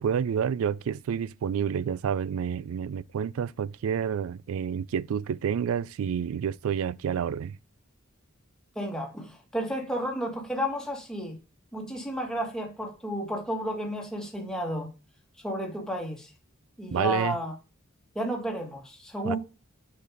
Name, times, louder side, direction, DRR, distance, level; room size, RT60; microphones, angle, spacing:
voice 1, 0.0-7.6 16.9-17.4 19.2-19.4, right 7 dB, 75° right, 0.3 m, -29 dB
voice 2, 8.7-11.4 11.7-14.9 15.4-16.3 16.8-17.5 18.1-19.4, equal, 5° left, 1.6 m, -32 dB
6.6 x 5.5 x 3.5 m
head